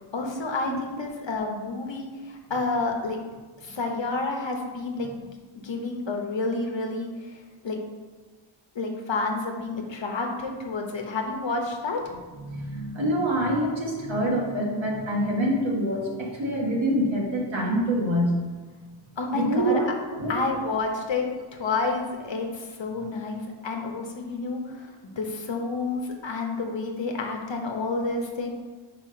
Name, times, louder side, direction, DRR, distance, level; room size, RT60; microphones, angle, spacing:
voice 1, 0.1-3.2 3.6-5.3 5.6-7.4 7.6-7.8 8.7-12.1 19.2-19.8 20.3-21.3 21.6-24.9 25.2-28.5, left 3 dB, 65° left, 2 dB, 1.1 m, -29 dB
voice 2, 12.4-18.4 19.3-19.9 20.1-20.4, right 1 dB, 70° right, -3 dB, 1.7 m, -25 dB
4.9 x 4.8 x 5.7 m, 1.4 s
wide cardioid pair, 110°, 48 cm